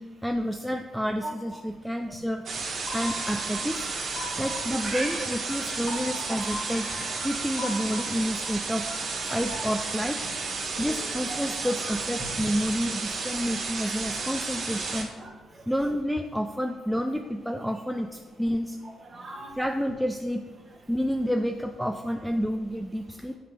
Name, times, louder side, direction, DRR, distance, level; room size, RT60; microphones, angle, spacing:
voice 1, 0.0-2.4 2.9-3.9 4.4-6.9 7.2-8.9 9.2-10.2 10.8-15.1 15.7-18.8 19.6-20.4 20.9-23.4, equal, ahead, 4 dB, 0.3 m, -29 dB
sound 1, 2.5-15.0, right 4 dB, 55° right, 1.1 m, -32 dB
sound 2, 2.9-9.7, left 2 dB, 75° left, 1.5 m, -41 dB
voice 2, 4.3-5.3 6.9-7.0 10.5-11.7 14.7-15.7 19.0-19.6, right 2 dB, 30° right, -1 dB, 1.4 m, -40 dB
7.6 x 2.8 x 5.0 m, 1.3 s
cardioid pair, 90°, 0 cm